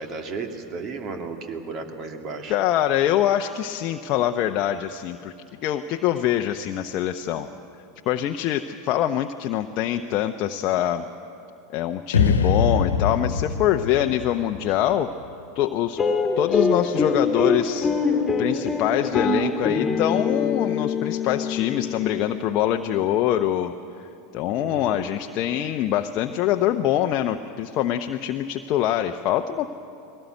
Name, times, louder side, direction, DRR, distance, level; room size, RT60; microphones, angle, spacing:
voice 1, 0.0-2.6 24.6-25.1, right 4 dB, 40° right, 5 dB, 2.5 m, -34 dB
voice 2, 2.5-5.3 5.6-7.5 8.1-11.0 11.7-15.1 15.5-16.0 16.4-17.9 18.4-23.7 24.3-29.7, left 11 dB, 50° left, 6 dB, 0.8 m, -24 dB
sound 1, 12.1-15.3, left 5 dB, 80° left, 1.3 m, -23 dB
sound 2, 16.0-22.5, left 4 dB, 15° left, 2.3 m, -24 dB
21.0 x 18.0 x 9.3 m, 2.7 s
hypercardioid pair, 85°, 0 cm